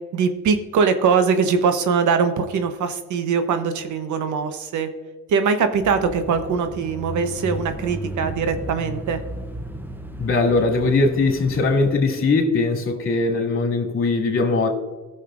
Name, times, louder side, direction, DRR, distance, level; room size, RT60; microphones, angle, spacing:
voice 1, 0.1-4.9 5.3-9.2, right 5 dB, 75° right, 8 dB, 1.0 m, -22 dB
Bicycle / Mechanisms, 5.8-11.9, right 1 dB, 5° right, 0.7 m, -34 dB
voice 2, 10.2-14.7, left 3 dB, 45° left, 1 dB, 2.4 m, -20 dB
16.0 x 6.6 x 2.5 m, 1.3 s
cardioid pair, 90°, 30 cm